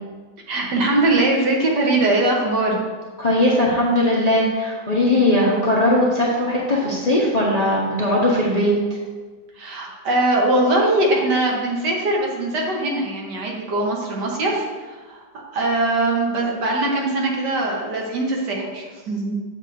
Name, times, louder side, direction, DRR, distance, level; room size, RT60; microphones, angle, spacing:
voice 1, 0.5-2.8 9.6-19.4, right 2 dB, 70° right, -1 dB, 1.7 m, -21 dB
voice 2, 3.2-8.7, left 1 dB, 30° left, -5 dB, 0.8 m, -19 dB
7.5 x 7.3 x 2.6 m, 1.4 s
omnidirectional pair, 1.9 m